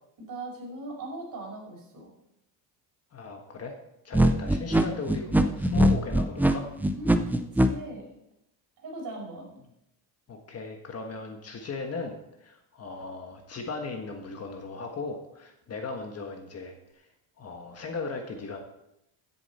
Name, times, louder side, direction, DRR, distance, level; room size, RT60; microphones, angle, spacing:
voice 1, 0.3-2.1 7.0-7.1 7.5-8.2 8.8-9.6, right 2 dB, 45° right, -2 dB, 5.4 m, -39 dB
voice 2, 3.1-3.8 4.0-6.7 10.3-17.1 17.4-18.6, left 4 dB, 35° left, 4 dB, 1.4 m, -37 dB
sound 1, 4.1-7.7, right 1 dB, 5° right, 0.4 m, -21 dB
15.5 x 7.2 x 4.2 m, 0.83 s
cardioid pair, 135°, 45 cm